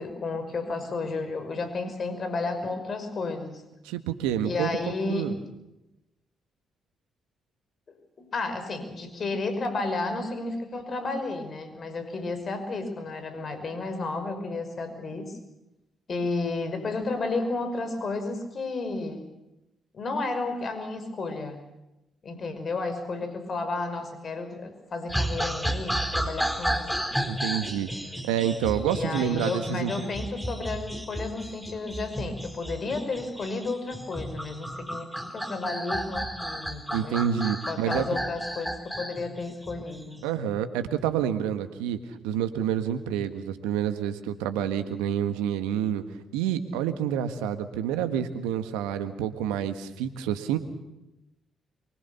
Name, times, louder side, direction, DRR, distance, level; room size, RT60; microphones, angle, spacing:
voice 1, 0.0-3.6 4.4-5.3 8.2-15.4 16.1-19.2 19.9-21.6 22.2-27.1 28.9-37.2 37.7-40.3, left 3 dB, 50° left, 8 dB, 5.7 m, -32 dB
voice 2, 3.8-4.7 5.1-5.3 27.3-27.9 28.2-29.9 36.9-38.1 40.2-42.0 42.2-46.0 46.3-50.6, right 9 dB, 80° right, 9 dB, 1.6 m, -28 dB
sound 1, 25.1-40.2, right 1 dB, ahead, 4.3 m, -32 dB
24.5 x 24.0 x 7.1 m, 0.95 s
hypercardioid pair, 45°, 0 cm